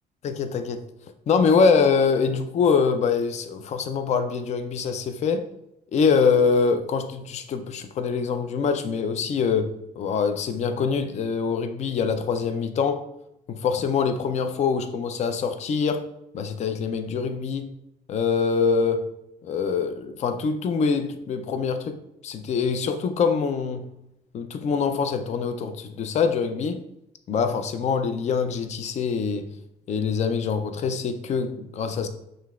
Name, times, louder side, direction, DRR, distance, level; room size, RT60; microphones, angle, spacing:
voice 1, 0.2-0.8 1.3-5.5 5.9-13.0 13.5-16.1 16.3-17.7 18.1-19.1 19.4-22.0 22.2-23.9 24.3-26.8 27.3-29.5 29.9-32.1, left 5 dB, 40° left, 8 dB, 0.5 m, -24 dB
5.7 x 3.3 x 2.4 m, 0.83 s
cardioid pair, 110°, 17 cm